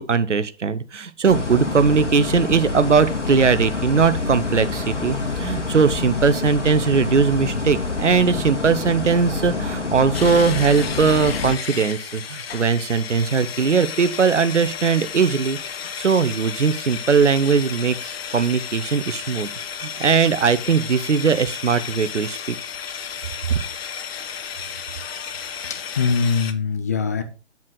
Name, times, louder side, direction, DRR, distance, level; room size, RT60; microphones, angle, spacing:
voice 1, 0.0-15.6 16.0-19.5 19.8-22.6 23.5-23.6, right 5 dB, 85° right, 0.9 m, -20 dB
sound 1, 1.3-11.6, left 3 dB, 85° left, 1.9 m, -27 dB
sound 2, 10.1-26.5, left 7 dB, 55° left, 1.0 m, -33 dB
voice 2, 25.6-27.2, left 5 dB, 15° left, 0.4 m, -23 dB
7.8 x 7.4 x 3.8 m
figure-of-eight pair, 135°, 35 cm